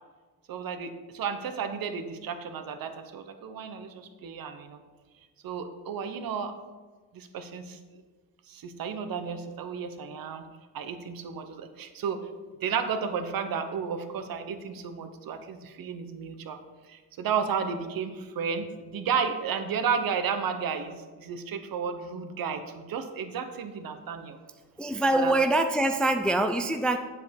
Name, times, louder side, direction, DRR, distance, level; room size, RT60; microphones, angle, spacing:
voice 1, 0.5-4.8 5.4-6.5 7.1-8.0 8.5-10.5 10.7-12.2 12.6-16.6 16.9-24.4 25.1-25.3, right 6 dB, 55° right, 8 dB, 1.1 m, -33 dB
voice 2, 24.8-27.0, right 2 dB, ahead, 6 dB, 0.4 m, -24 dB
8.2 x 7.6 x 5.3 m, 1.4 s
supercardioid pair, 90°, 43 cm